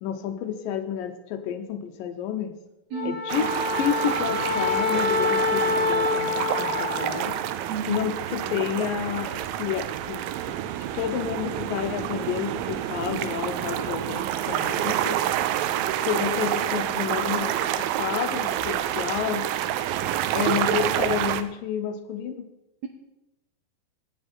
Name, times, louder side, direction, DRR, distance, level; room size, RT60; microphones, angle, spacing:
voice 1, 0.0-2.6 3.0-3.5 3.8-7.4 7.9-10.6 10.9-15.2 16.0-19.5 20.3-22.5, left 9 dB, 75° left, 8 dB, 2.4 m, -30 dB
Wind instrument woodwind instrument, 2.9-7.3, left 3 dB, 50° right, 5.3 m, -26 dB
voice 2, 2.9-3.5 7.7-8.1, right 6 dB, 70° right, 4 dB, 1.7 m, -33 dB
sound 1, 3.3-21.4, right 11 dB, 85° right, 2.4 m, -28 dB
17.5 x 9.7 x 4.3 m, 0.94 s
omnidirectional pair, 4.2 m